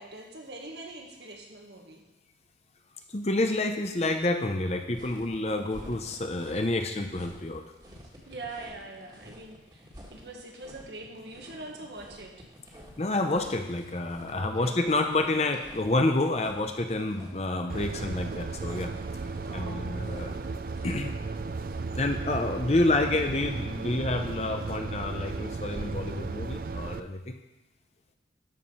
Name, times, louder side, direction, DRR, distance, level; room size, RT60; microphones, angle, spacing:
voice 1, 0.0-2.0 8.3-12.3 14.4-14.8 19.4-20.0, right 2 dB, 70° right, 1 dB, 1.7 m, -43 dB
voice 2, 3.1-7.6 13.0-18.9 19.5-20.3 20.8-21.1 22.0-27.3, left 2 dB, 35° left, 6 dB, 0.8 m, -28 dB
sound 1, 4.9-22.0, equal, 25° right, 1.8 m, -50 dB
sound 2, 17.7-27.0, right 4 dB, 50° right, 0.4 m, -35 dB
12.5 x 4.9 x 5.6 m, 0.99 s
head